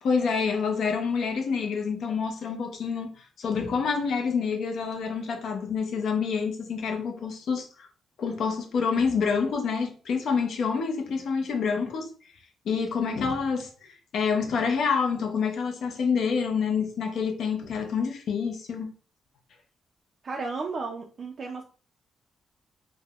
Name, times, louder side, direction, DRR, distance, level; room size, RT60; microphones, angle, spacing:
voice 1, 0.0-7.9 8.2-12.1 12.7-18.9, left 5 dB, 65° left, 0.5 m, -27 dB
voice 2, 20.2-21.6, right 4 dB, 40° right, 0.3 m, -33 dB
3.3 x 2.0 x 2.3 m
cardioid pair, 135°, 0 cm